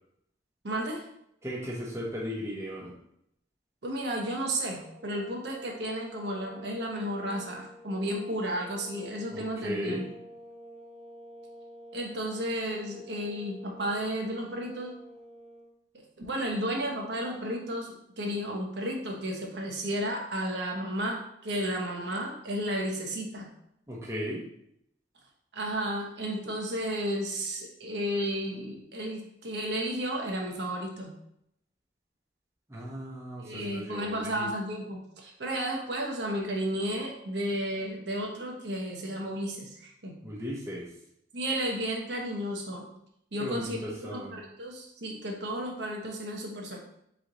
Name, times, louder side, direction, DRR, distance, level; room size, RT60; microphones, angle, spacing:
voice 1, 0.6-1.0 3.8-10.0 11.9-15.0 15.9-23.5 25.5-31.1 33.4-40.1 41.3-42.9 43.3-46.8, equal, 65° right, 0 dB, 0.9 m, -33 dB
voice 2, 1.4-2.9 9.3-10.0 23.9-24.4 32.7-34.5 40.2-40.9 43.4-44.4, equal, 15° right, -5 dB, 0.8 m, -36 dB
sound 1, 4.7-15.7, equal, 5° left, 1.4 m, -49 dB
4.2 x 3.1 x 3.9 m, 0.75 s
head